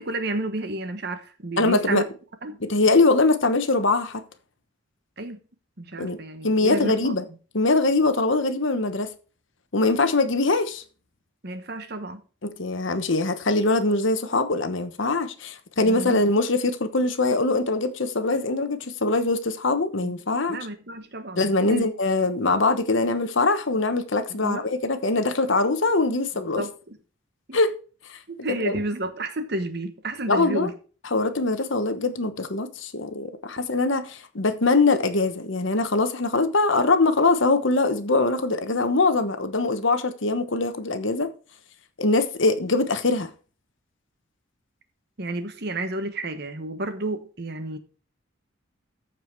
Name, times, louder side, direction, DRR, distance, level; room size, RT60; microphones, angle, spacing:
voice 1, 0.0-2.0 2.4-2.6 5.2-5.4 5.8-7.1 11.4-12.2 15.8-16.2 20.0-20.1 20.5-21.8 24.3-24.7 26.5-27.0 27.5-27.6 28.3-30.7 45.2-47.8, right 1 dB, 50° right, 1.2 m, -31 dB
voice 2, 1.6-2.0 2.6-4.2 6.0-6.2 6.4-7.2 7.5-9.1 9.7-10.8 12.4-20.6 21.4-26.6 27.5-27.7 28.1-28.2 28.5-28.8 30.3-30.7 31.1-41.3 42.0-43.3, left 3 dB, 65° left, 1.1 m, -22 dB
14.0 x 4.9 x 4.6 m
head